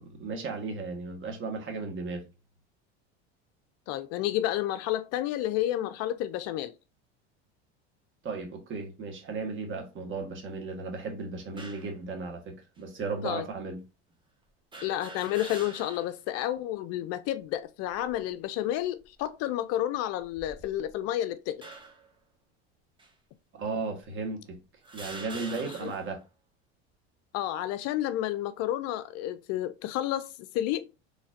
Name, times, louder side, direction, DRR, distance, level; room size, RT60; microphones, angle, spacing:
voice 1, 0.0-2.2 8.2-13.8 23.5-24.6 24.9-26.2, right 4 dB, 40° right, 1.5 m, -35 dB
voice 2, 3.9-6.7 13.2-13.5 14.8-21.7 25.8-25.9 27.3-30.9, left 13 dB, 50° left, 0.4 m, -31 dB
sound 1, 11.6-11.9 12.8-12.9 14.7-16.2 16.6-16.7 17.8-18.3 19.0-19.2 20.2-21.0 21.6-22.1 23.0-23.1 24.0-24.1 24.8-26.2, right 3 dB, 15° right, 1.1 m, -45 dB
4.0 x 3.2 x 2.5 m
supercardioid pair, 100°, 32 cm